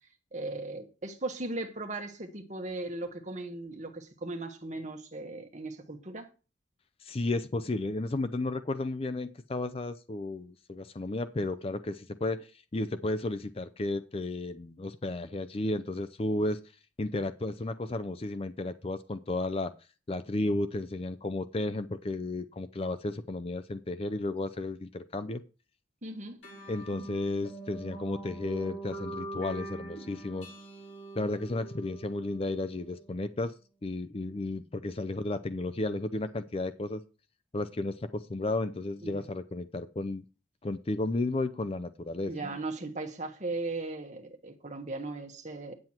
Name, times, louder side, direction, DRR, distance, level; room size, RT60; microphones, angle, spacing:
voice 1, 0.3-6.3 26.0-26.4 39.0-39.3 42.3-45.7, right 2 dB, 40° right, 1.4 m, -37 dB
voice 2, 7.0-16.6 17.0-19.7 20.1-25.4 26.7-30.5 31.2-33.5 33.8-37.0 37.5-40.2 40.6-42.3, left 2 dB, 30° left, 0.5 m, -33 dB
sound 1, 26.4-33.3, right 2 dB, 75° left, 4.4 m, -43 dB
9.3 x 7.7 x 4.4 m
head